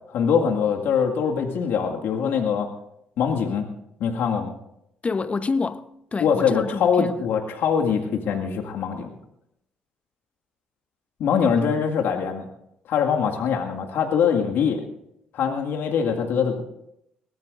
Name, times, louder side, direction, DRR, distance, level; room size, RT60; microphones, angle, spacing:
voice 1, 0.1-2.7 3.2-3.7 4.0-4.5 6.2-9.1 11.2-12.5 12.9-14.8 15.3-16.6, left 7 dB, 65° left, 1.9 m, -23 dB
voice 2, 5.0-7.2, left 4 dB, 30° left, 0.9 m, -27 dB
23.0 x 17.5 x 2.6 m
hypercardioid pair, 50°, 4 cm